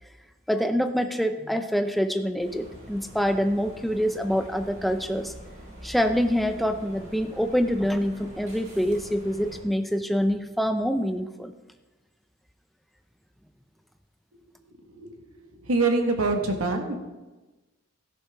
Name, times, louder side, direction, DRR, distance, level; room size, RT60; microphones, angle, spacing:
voice 1, 0.5-5.3 5.8-11.5, equal, ahead, 7 dB, 0.5 m, -26 dB
sound 1, 2.4-9.6, equal, 35° right, 3.9 m, -45 dB
voice 2, 15.6-17.0, right 3 dB, 85° right, 4 dB, 1.5 m, -24 dB
13.0 x 11.0 x 3.5 m, 1.2 s
head